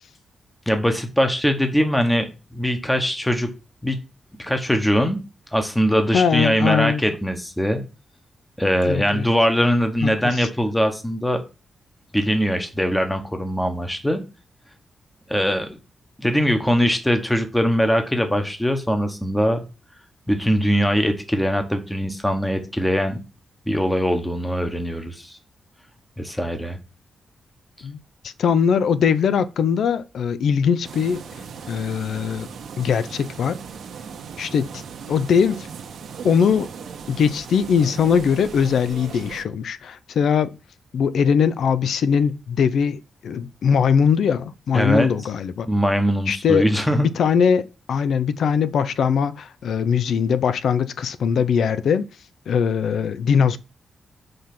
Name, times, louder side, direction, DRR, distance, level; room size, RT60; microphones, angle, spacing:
voice 1, 0.7-3.5 3.8-4.0 4.4-5.2 5.5-7.8 8.6-11.4 12.1-14.2 15.3-15.8 16.2-19.6 20.3-23.2 23.7-25.4 26.2-26.8 44.7-45.1 45.7-47.1, equal, 5° left, 1.1 m, -21 dB
voice 2, 6.1-7.0 8.9-9.3 10.0-10.5 27.8-28.0 28.2-31.2 31.7-32.5 32.8-33.6 34.4-34.8 35.1-35.7 36.2-36.7 37.1-40.6 40.9-45.7 46.3-46.7 47.0-52.1 52.5-53.6, left 7 dB, 70° left, 0.5 m, -21 dB
sound 1, 30.8-39.4, right 6 dB, 70° right, 1.1 m, -38 dB
5.7 x 5.4 x 5.9 m
wide cardioid pair, 165°, 0 cm